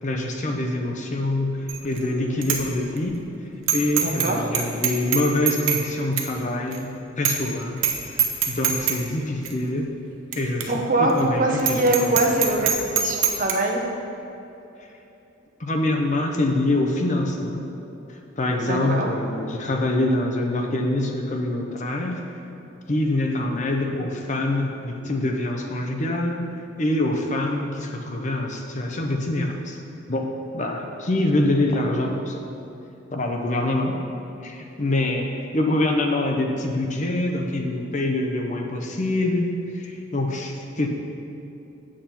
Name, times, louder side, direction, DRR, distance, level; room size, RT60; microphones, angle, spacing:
voice 1, 0.0-3.2 3.7-7.8 8.1-9.9 10.3-12.5 15.6-17.7 18.1-22.2 22.9-26.4 26.8-29.8 30.1-32.4 33.1-34.0 34.4-35.3 35.5-40.9, left 1 dB, 40° left, 2 dB, 0.8 m, -25 dB
Bicycle bell, 1.7-2.0 2.4-2.6 3.0-3.1 3.7-4.3 4.5-5.8 6.2-6.3 6.7-6.8 7.2-7.5 7.8-7.9 8.2-9.0 9.4-9.5 10.3-10.4 10.6-10.7 11.1-11.2 11.6-13.5, right 8 dB, 90° right, 0.9 m, -22 dB
voice 2, 4.0-4.4 10.7-13.8 18.7-19.1, right 2 dB, 45° right, 1 dB, 1.0 m, -23 dB
8.5 x 7.5 x 4.4 m, 2.9 s
head